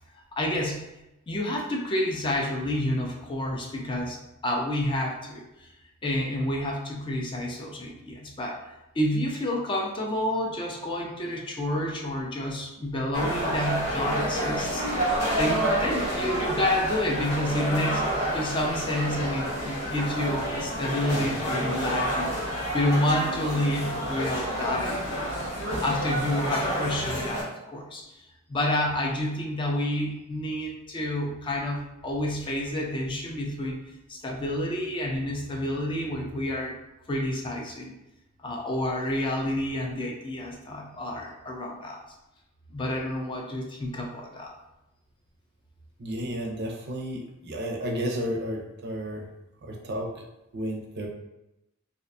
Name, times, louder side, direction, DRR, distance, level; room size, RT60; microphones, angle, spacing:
voice 1, 0.3-0.9 1.3-5.4 6.0-8.6 9.0-22.3 22.7-25.3 25.8-28.1 28.5-33.8 34.1-36.7 37.1-37.9 38.4-42.0 42.7-44.5, left 1 dB, 25° left, 0 dB, 0.3 m, -29 dB
sound 1, 13.1-27.4, right 1 dB, 75° left, 0.9 m, -29 dB
voice 2, 46.0-49.2 49.6-50.2 50.5-51.1, equal, 50° right, 1 dB, 0.5 m, -32 dB
2.5 x 2.1 x 2.5 m, 0.92 s
head